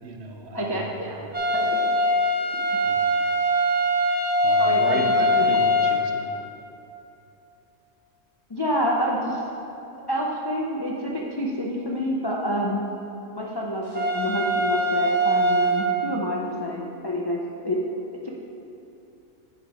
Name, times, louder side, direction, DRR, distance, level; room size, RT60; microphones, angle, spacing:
voice 1, 0.0-1.3 2.8-3.0 4.4-6.3, right 3 dB, 60° right, 2 dB, 0.9 m, -34 dB
voice 2, 0.5-1.2 1.5-2.0 4.6-5.0 5.3-5.4 8.5-9.4 10.1-12.8 13.3-17.8 18.2-18.3, equal, 35° left, -3 dB, 0.4 m, -28 dB
sound 1, 1.3-6.0 13.9-15.9, equal, 35° right, 0.9 m, -22 dB
9.7 x 4.5 x 4.7 m, 2.9 s
omnidirectional pair, 1.3 m